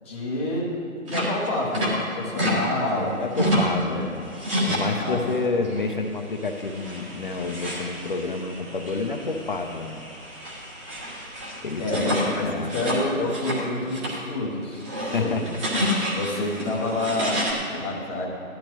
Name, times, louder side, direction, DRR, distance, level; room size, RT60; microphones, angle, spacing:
voice 1, 0.0-0.7 1.1-3.1 3.9-4.1 4.9-5.5 11.8-14.8 15.2-15.4 16.1-18.3, left 1 dB, 10° left, -6 dB, 0.9 m, -28 dB
sound 1, 1.1-2.6 2.9-3.8 4.2-5.3 5.6-5.9 6.4-13.6 13.9-14.2 14.6-17.5, equal, 20° right, 1.7 m, -29 dB
voice 2, 2.8-4.3 4.7-10.0 11.6-12.2 12.4-12.7 15.0-15.6, left 3 dB, 35° left, 4 dB, 0.7 m, -29 dB
16.5 x 12.0 x 3.1 m, 2.7 s
hypercardioid pair, 160°, 42 cm